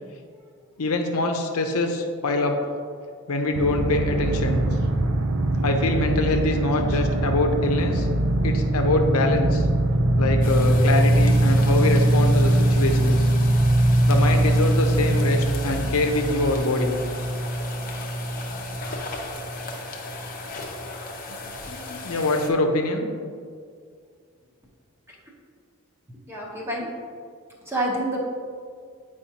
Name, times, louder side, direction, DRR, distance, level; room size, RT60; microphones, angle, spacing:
voice 1, 0.8-2.6 3.3-4.6 5.6-8.1 8.4-9.6 10.2-13.2 14.1-16.9 21.3-21.4 21.7-23.1, left 2 dB, 80° left, 4 dB, 0.7 m, -24 dB
sound 1, 3.5-19.2 19.7-19.8, right 1 dB, 80° right, 0.5 m, -22 dB
sound 2, 10.4-22.5, left 3 dB, 40° left, 0.7 m, -36 dB
voice 2, 26.3-26.9 27.7-28.2, right 1 dB, 10° right, -3 dB, 1.0 m, -27 dB
8.6 x 4.8 x 2.9 m, 2.1 s
head